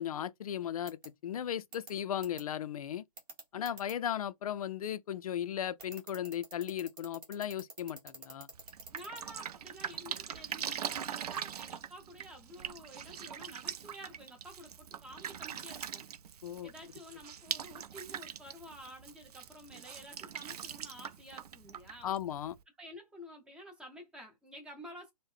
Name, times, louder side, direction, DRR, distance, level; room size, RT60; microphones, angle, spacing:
voice 1, 0.0-3.0 3.5-8.5 16.4-16.7 22.0-22.6, left 10 dB, 60° left, 0.4 m, -36 dB
sound 1, 0.9-1.1 1.7-1.9 2.2-2.4 3.2-3.9 5.8-9.2, right 3 dB, 20° right, 1.1 m, -47 dB
Drip, 8.5-22.6, right 8 dB, 70° right, 0.4 m, -42 dB
voice 2, 8.9-16.1 16.3-22.1 22.8-25.1, equal, 5° right, 0.6 m, -51 dB
3.6 x 2.1 x 3.3 m
hypercardioid pair, 150°, 20 cm